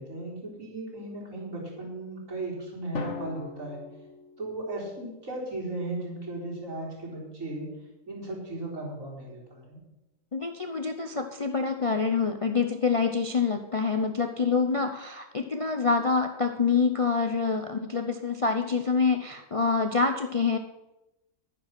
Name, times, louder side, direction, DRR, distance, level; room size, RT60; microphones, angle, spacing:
voice 1, 0.0-3.8 4.4-7.7 8.1-9.8, right 2 dB, 75° right, -5 dB, 4.7 m, -36 dB
Drum, 2.9-5.0, left 4 dB, 60° left, 1.8 m, -39 dB
voice 2, 10.3-20.6, left 4 dB, 35° left, 6 dB, 0.5 m, -26 dB
11.0 x 10.0 x 6.0 m, 0.97 s
omnidirectional pair, 1.4 m